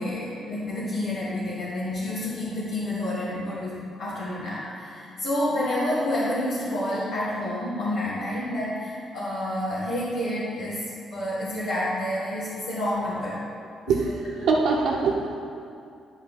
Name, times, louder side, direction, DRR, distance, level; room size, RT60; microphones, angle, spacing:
voice 1, 0.0-13.4 13.9-14.0, left 1 dB, 80° left, -10 dB, 1.8 m, -29 dB
voice 2, 13.9-15.6, right 4 dB, 80° right, -5 dB, 0.9 m, -24 dB
10.5 x 5.7 x 4.1 m, 2.5 s
cardioid pair, 90°, 0 cm